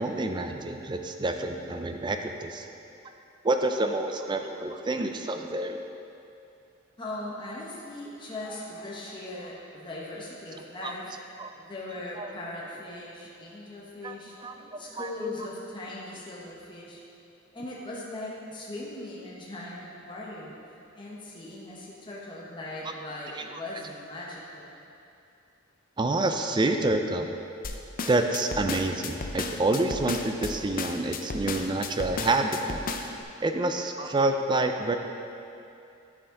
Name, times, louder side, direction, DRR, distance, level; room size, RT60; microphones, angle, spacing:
voice 1, 0.0-2.7 3.4-5.8 10.8-10.9 11.4-11.5 12.2-12.3 14.0-14.1 14.4-15.1 23.3-23.5 26.0-27.3 28.1-32.9 33.4-35.0, right 2 dB, 20° right, 5 dB, 0.4 m, -28 dB
voice 2, 7.0-11.1 11.6-14.3 14.8-17.0 17.5-19.8 20.1-20.5 20.9-24.8, left 2 dB, 25° left, -6 dB, 1.1 m, -39 dB
sound 1, 27.6-33.2, left 4 dB, 45° left, 0.5 m, -34 dB
12.0 x 4.9 x 3.8 m, 2.7 s
head